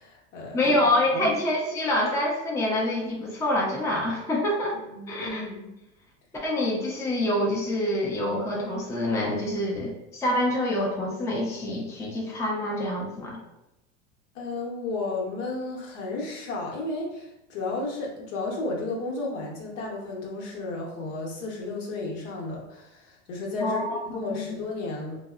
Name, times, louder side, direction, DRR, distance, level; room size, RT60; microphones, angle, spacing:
voice 1, 0.0-0.7 1.1-1.4 4.8-5.7 14.3-25.2, left 2 dB, 75° left, -1 dB, 0.9 m, -33 dB
voice 2, 0.5-4.8 5.1-5.5 6.4-13.4 23.6-24.6, left 1 dB, 10° left, -3 dB, 0.4 m, -26 dB
2.6 x 2.1 x 2.3 m, 0.91 s
supercardioid pair, 100°, 38 cm